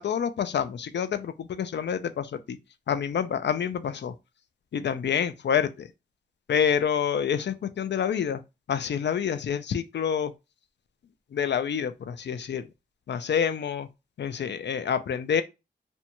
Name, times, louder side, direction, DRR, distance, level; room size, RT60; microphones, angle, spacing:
voice 1, 0.0-2.6 2.9-4.1 4.7-5.9 6.5-8.4 8.7-10.3 11.3-12.7 13.1-13.9 14.2-15.4, left 8 dB, 65° left, 0.4 m, -27 dB
2.6 x 2.2 x 2.8 m
cardioid pair, 60°, 19 cm